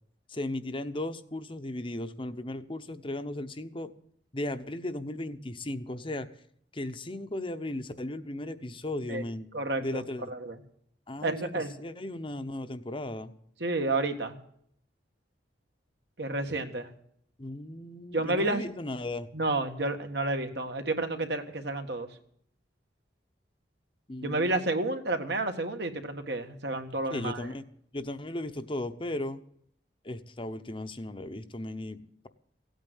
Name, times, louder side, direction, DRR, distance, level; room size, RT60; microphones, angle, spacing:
voice 1, 0.3-3.9 4.3-6.3 6.7-9.5 9.8-10.3 11.1-11.5 11.8-13.3 17.4-19.3 24.1-24.6 27.1-27.6 27.9-29.4 30.0-32.0, left 1 dB, 30° left, 10 dB, 0.9 m, -36 dB
voice 2, 9.5-10.6 11.2-11.7 13.6-14.4 16.2-16.9 18.1-18.6 19.3-22.1 24.2-27.5, right 2 dB, 65° right, 5 dB, 1.8 m, -30 dB
16.5 x 9.2 x 7.9 m, 0.66 s
head